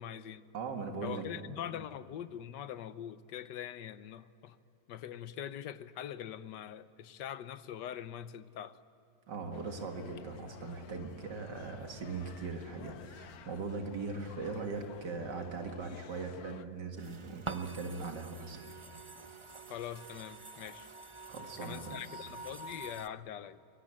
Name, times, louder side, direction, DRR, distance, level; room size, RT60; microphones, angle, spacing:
voice 1, 0.0-0.4 1.0-4.6 4.9-8.8 19.7-20.9 21.6-23.6, left 10 dB, 85° left, 1.5 m, -43 dB
voice 2, 0.5-1.6 9.3-18.6 21.3-22.3, right 4 dB, 80° right, 2.5 m, -40 dB
sound 1, 9.5-16.6, left 8 dB, 65° left, 1.3 m, -54 dB
sound 2, 17.0-23.1, right 3 dB, 30° right, 0.5 m, -47 dB
23.5 x 22.0 x 8.9 m
omnidirectional pair, 1.8 m